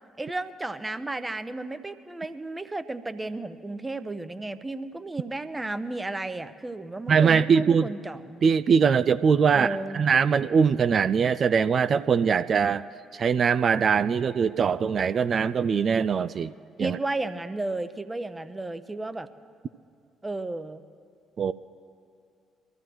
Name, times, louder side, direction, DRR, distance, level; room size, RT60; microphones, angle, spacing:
voice 1, 0.2-8.4 9.5-10.0 16.8-19.3 20.2-20.8, right 2 dB, 20° right, 12 dB, 0.8 m, -33 dB
voice 2, 7.1-7.9 8.4-12.9 13.1-16.5 16.8-17.0 21.4-21.5, right 6 dB, 50° right, 14 dB, 0.3 m, -22 dB
24.0 x 14.5 x 3.1 m, 2.3 s
figure-of-eight pair, 45°, 0 cm